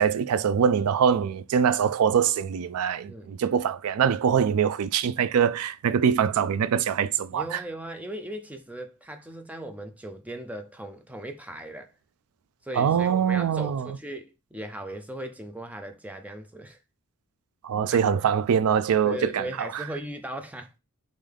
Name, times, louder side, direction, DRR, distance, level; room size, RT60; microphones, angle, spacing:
voice 1, 0.0-7.6 12.8-14.0 17.6-19.8, right 7 dB, 85° right, 0.4 m, -23 dB
voice 2, 3.1-3.4 7.3-11.9 12.6-16.8 17.9-18.2 19.0-20.7, right 1 dB, 5° right, 0.4 m, -38 dB
3.7 x 3.1 x 3.4 m
head